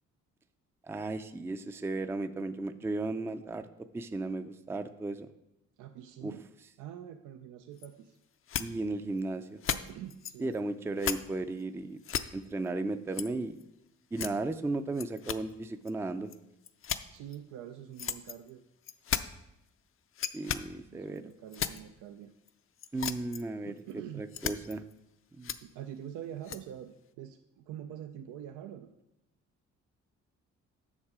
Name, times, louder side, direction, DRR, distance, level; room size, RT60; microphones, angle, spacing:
voice 1, 0.9-3.7 3.9-5.3 6.2-6.3 8.6-9.6 10.4-12.0 12.3-13.6 14.1-16.3 20.3-21.3 22.9-23.7 24.2-24.8 25.3-25.6, right 2 dB, 10° right, 9 dB, 0.4 m, -35 dB
voice 2, 5.8-6.4 6.8-8.2 9.7-10.5 17.1-18.6 20.9-22.3 23.7-24.2 25.6-28.9, right 10 dB, 90° right, 7 dB, 0.5 m, -45 dB
sound 1, 7.8-7.9 8.5-8.6 9.2-9.3 9.6-10.6 11.0-11.2 11.6-11.7 12.0-12.2 13.1-13.3 13.6-13.7 14.1-14.5 14.9-15.5 15.9-16.0 16.3-16.4 16.6-17.4 18.0-18.5 18.8-19.2 20.1-20.6 21.2-21.8 22.5-22.6 22.8-23.4 23.8-23.9 24.3-24.9 25.4-25.6 26.4-26.6, left 9 dB, 45° left, 0.5 m, -34 dB
7.3 x 6.4 x 4.8 m, 0.87 s
cardioid pair, 90°, 30 cm